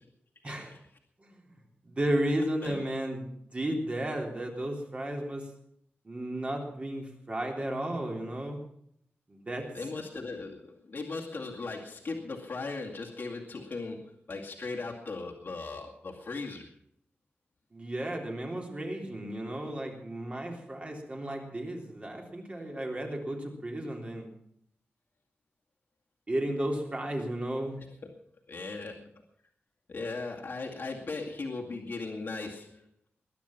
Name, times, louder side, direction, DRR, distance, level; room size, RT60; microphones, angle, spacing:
voice 1, 0.4-0.8 2.6-2.8 9.7-16.7 28.0-28.1 28.5-29.1 29.9-32.8, left 3 dB, 50° left, -1 dB, 2.2 m, -38 dB
voice 2, 1.8-5.4 6.0-8.6 9.3-9.7 17.7-24.3 26.3-27.7, right 1 dB, 30° right, 1 dB, 3.5 m, -33 dB
21.5 x 10.5 x 5.9 m, 0.69 s
wide cardioid pair, 140°, 4 cm